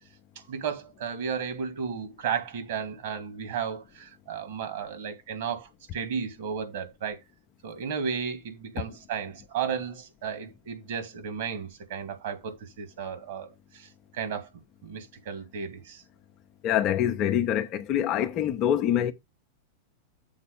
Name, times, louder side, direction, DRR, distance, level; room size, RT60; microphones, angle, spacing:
voice 1, 0.5-7.2 7.6-14.5 14.8-16.0, right 7 dB, 55° right, 2.4 m, -34 dB
voice 2, 16.6-19.1, left 10 dB, 35° left, 0.9 m, -25 dB
7.3 x 4.1 x 5.4 m
figure-of-eight pair, 90°, 0 cm